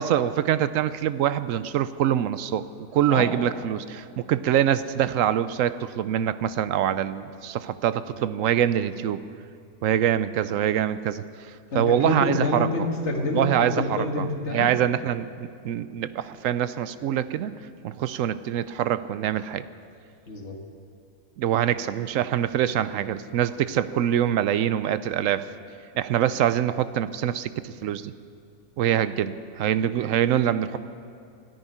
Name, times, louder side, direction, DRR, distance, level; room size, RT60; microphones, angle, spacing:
voice 1, 0.0-2.7 2.9-9.2 9.8-11.2 11.7-12.7 13.3-13.8 14.2-14.3 14.5-17.5 17.8-19.6 21.4-25.5 26.0-28.1 28.8-30.8, right 10 dB, 70° right, 14 dB, 0.9 m, -24 dB
voice 2, 11.7-14.7 20.3-20.6, left 2 dB, 50° left, 2 dB, 2.0 m, -27 dB
13.5 x 10.5 x 9.9 m, 2.4 s
omnidirectional pair, 1.5 m